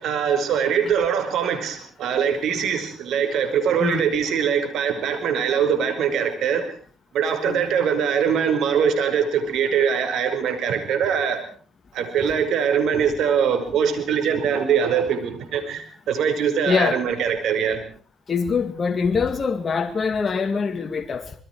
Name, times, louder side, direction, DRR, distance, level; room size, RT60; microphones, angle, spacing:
voice 1, 0.0-6.7 7.1-11.4 11.9-17.8, right 7 dB, 75° right, 5.3 m, -22 dB
voice 2, 16.7-17.0 18.3-21.3, left 5 dB, 40° left, 2.2 m, -24 dB
26.5 x 21.5 x 4.7 m
cardioid pair, 90°, 0 cm